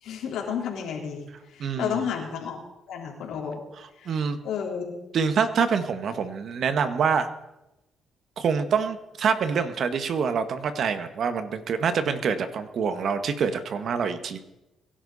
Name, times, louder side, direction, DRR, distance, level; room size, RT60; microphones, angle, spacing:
voice 1, 0.0-2.6 2.9-3.6 4.0-4.1 4.4-5.0, left 7 dB, 80° left, 0 dB, 3.9 m, -31 dB
voice 2, 1.6-2.0 4.0-4.4 5.1-7.3 8.4-14.4, right 6 dB, 60° right, 9 dB, 1.5 m, -26 dB
22.5 x 11.5 x 4.2 m, 0.93 s
cardioid pair, 90°, 0 cm